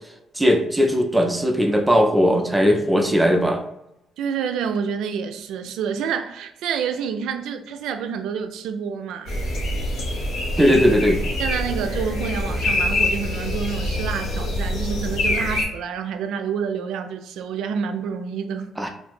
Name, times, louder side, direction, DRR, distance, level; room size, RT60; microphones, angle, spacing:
voice 1, 0.3-3.6 10.6-11.2 18.8-18.9, equal, 10° right, 0.5 m, -18 dB
voice 2, 4.2-9.3 11.4-18.7, right 7 dB, 85° right, 0.3 m, -28 dB
sound 1, 9.3-15.6, left 1 dB, 85° left, 1.1 m, -25 dB
2.7 x 2.6 x 3.5 m
cardioid pair, 90°, 0 cm